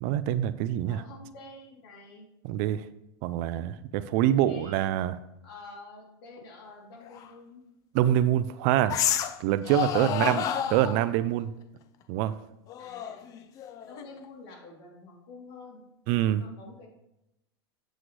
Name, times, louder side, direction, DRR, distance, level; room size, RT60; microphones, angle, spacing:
voice 1, 0.0-1.0 2.5-2.8 3.2-5.1 7.9-9.0 9.4-10.4 10.7-11.5 12.1-12.3 16.1-16.4, right 12 dB, 40° right, 13 dB, 0.4 m, -25 dB
voice 2, 0.8-2.3 4.2-4.9 5.4-7.6 10.0-10.5 12.8-13.3 13.8-15.8 16.4-16.9, left 3 dB, 65° left, -1 dB, 3.1 m, -48 dB
sound 1, 7.1-7.3 8.9-9.4 9.7-11.0 12.7-14.2, left 9 dB, 25° left, 0.5 m, -30 dB
8.0 x 7.5 x 3.2 m, 0.86 s
supercardioid pair, 160°, 14 cm